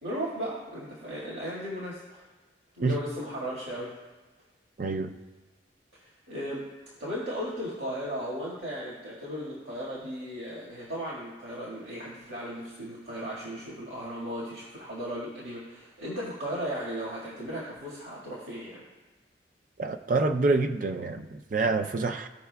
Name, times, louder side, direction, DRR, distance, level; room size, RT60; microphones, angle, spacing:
voice 1, 0.0-2.2 2.7-3.9 5.9-6.7 7.0-18.8, equal, 70° right, -6 dB, 1.8 m, -36 dB
voice 2, 4.8-5.1 19.8-22.3, right 3 dB, 45° right, 6 dB, 0.4 m, -27 dB
16.0 x 5.7 x 2.3 m, 1.3 s
head